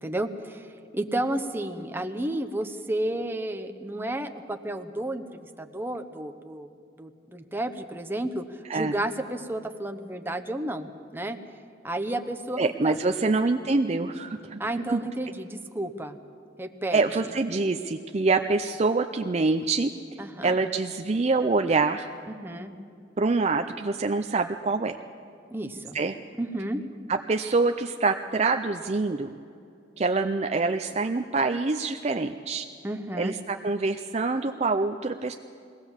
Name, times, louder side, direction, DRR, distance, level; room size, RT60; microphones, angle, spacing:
voice 1, 0.0-6.7 7.0-11.4 11.8-13.0 13.2-13.3 14.6-16.2 16.6-17.0 20.2-20.6 22.3-22.7 25.5-26.0 26.4-26.8 32.8-33.4, right 1 dB, 10° right, 7 dB, 0.9 m, -32 dB
voice 2, 12.6-15.0 16.9-19.9 20.4-22.1 23.2-25.0 25.9-26.2 27.1-29.3 30.0-32.7 33.2-35.3, right 3 dB, 35° right, 6 dB, 0.5 m, -25 dB
21.5 x 18.0 x 7.2 m, 2.5 s
head